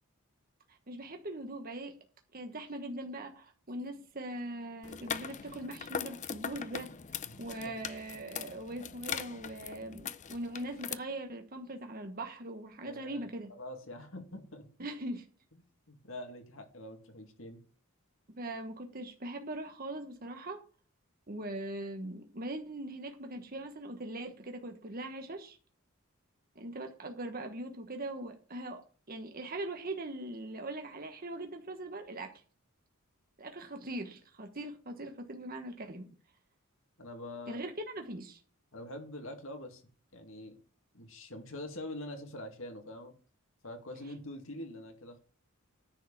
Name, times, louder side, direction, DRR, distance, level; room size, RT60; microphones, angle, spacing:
voice 1, 0.7-2.0 2.3-6.9 7.4-13.5 14.8-15.3 18.3-20.6 21.3-25.6 26.5-32.3 33.4-36.1 37.5-38.4, right 1 dB, 45° right, 1.2 m, -41 dB
sound 1, 4.8-10.9, left 7 dB, 35° left, 0.5 m, -41 dB
voice 2, 7.2-7.7 12.8-14.7 15.9-17.6 37.0-37.6 38.7-39.8 40.1-40.6 40.9-43.1 43.6-45.2, left 1 dB, 65° left, 2.2 m, -45 dB
10.0 x 4.7 x 7.3 m
head